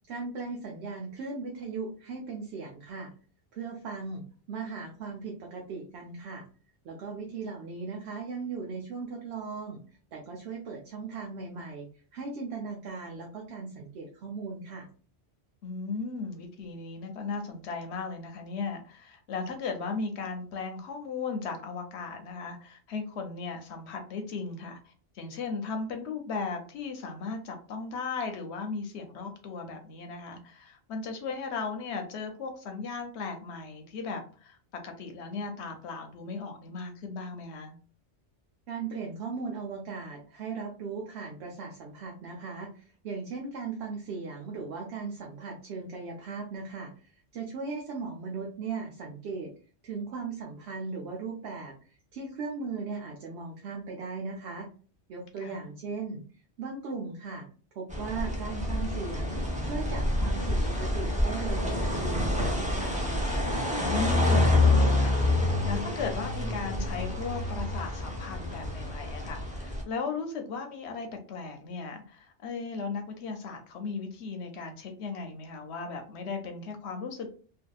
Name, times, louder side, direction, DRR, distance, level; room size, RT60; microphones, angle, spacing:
voice 1, 0.1-3.1 3.5-6.5 6.8-9.8 10.1-14.9 38.7-49.5 49.8-54.7 55.1-56.2 56.6-57.5 57.7-63.0, right 4 dB, 70° right, 0 dB, 0.8 m, -38 dB
voice 2, 15.6-34.6 34.8-37.8 55.4-55.5 63.8-77.3, left 4 dB, 70° left, 5 dB, 0.8 m, -36 dB
sound 1, 57.9-69.8, left 2 dB, 10° right, 0.4 m, -27 dB
2.6 x 2.3 x 2.2 m, 0.40 s
omnidirectional pair, 1.2 m